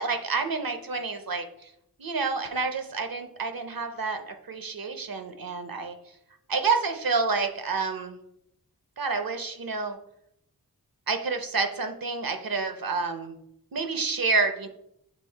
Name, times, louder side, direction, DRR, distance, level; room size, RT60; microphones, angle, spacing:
voice 1, 0.0-1.7 2.0-6.0 6.5-8.2 9.0-10.0 11.1-13.3 13.7-14.7, right 4 dB, 75° right, 7 dB, 0.8 m, -29 dB
7.6 x 2.8 x 4.4 m, 0.77 s
wide cardioid pair, 60°, 36 cm